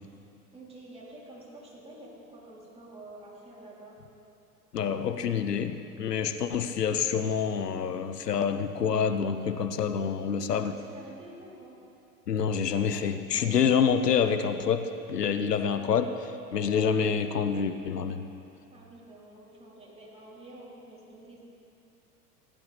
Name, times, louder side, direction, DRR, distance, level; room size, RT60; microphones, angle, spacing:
voice 1, 0.5-4.0 5.1-5.2 10.0-11.7 13.3-13.6 15.2-15.8 18.7-21.4, right 2 dB, 15° right, -6 dB, 3.2 m, -49 dB
voice 2, 4.7-10.7 12.3-18.3, left 7 dB, 80° left, 10 dB, 0.7 m, -27 dB
16.0 x 10.5 x 4.1 m, 2.7 s
figure-of-eight pair, 85°, 47 cm